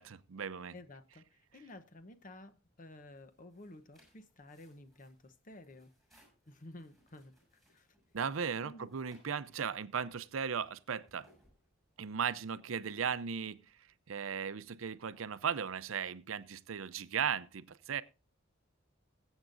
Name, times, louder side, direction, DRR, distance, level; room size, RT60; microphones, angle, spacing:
voice 1, 0.0-0.7 8.1-11.3 12.0-13.6 14.1-18.0, right 7 dB, 80° right, 0.6 m, -37 dB
voice 2, 0.7-5.9 6.5-7.9 8.6-8.9, left 1 dB, 40° left, 0.9 m, -53 dB
sound 1, 3.1-12.2, equal, ahead, 6.5 m, -69 dB
21.0 x 8.1 x 2.6 m
head